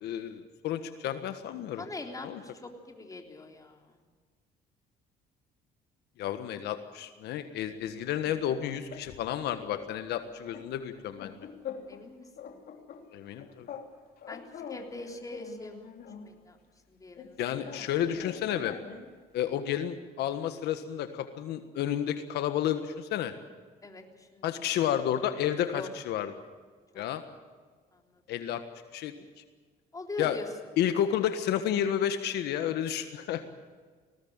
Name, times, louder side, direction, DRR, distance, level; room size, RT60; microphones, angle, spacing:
voice 1, 0.0-1.8 2.2-2.4 6.2-11.3 13.1-13.7 17.4-18.7 19.3-23.3 24.4-26.3 26.9-27.2 28.3-28.6 28.9-29.1 30.2-30.4 30.8-33.4, left 10 dB, 80° left, 9 dB, 1.5 m, -31 dB
voice 2, 1.8-4.0 11.9-12.5 14.3-14.4 14.7-15.9 16.2-16.6 16.9-17.9 23.8-24.5 25.7-25.9 26.9-27.0 27.9-28.2 29.9-30.5, left 2 dB, 20° left, 3 dB, 3.5 m, -43 dB
sound 1, 8.0-9.3 9.7-9.9 10.2-12.1 12.4-13.9 14.2-16.3 17.2-19.2, left 7 dB, 60° left, 3.2 m, -45 dB
20.0 x 17.5 x 8.8 m, 1.5 s
cardioid pair, 110°, 17 cm